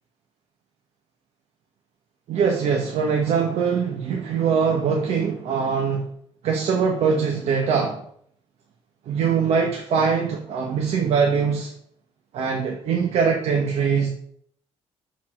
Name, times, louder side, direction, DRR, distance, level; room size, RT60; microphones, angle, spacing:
voice 1, 2.3-6.1 6.4-8.0 9.1-11.7 12.3-14.1, right 6 dB, 65° right, 1 dB, 1.1 m, -22 dB
7.3 x 4.1 x 6.0 m, 0.65 s
cardioid pair, 135°, 11 cm